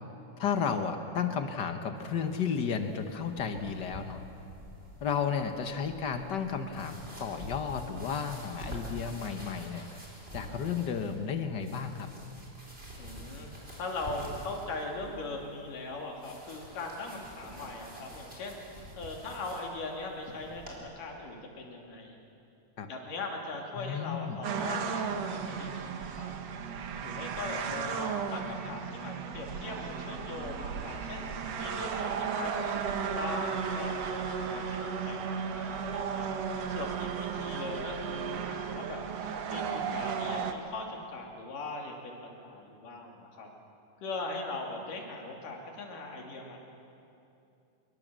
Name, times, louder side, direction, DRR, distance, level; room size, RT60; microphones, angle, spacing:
voice 1, 0.4-4.2 5.0-9.9 10.3-12.1 22.8-22.9 23.8-24.4, left 6 dB, 65° left, 7 dB, 1.0 m, -33 dB
sound 1, 2.0-20.8, equal, 15° right, 4.5 m, -47 dB
voice 2, 13.0-13.5 13.8-18.6 19.0-22.2 22.9-26.3 27.0-31.3 31.6-36.3 36.7-39.0 39.5-43.5 44.0-46.6, left 2 dB, 85° left, 1 dB, 4.4 m, -40 dB
sound 2, 24.4-40.5, right 6 dB, 60° right, 2.2 m, -34 dB
26.0 x 22.0 x 7.5 m, 2.7 s
omnidirectional pair, 3.7 m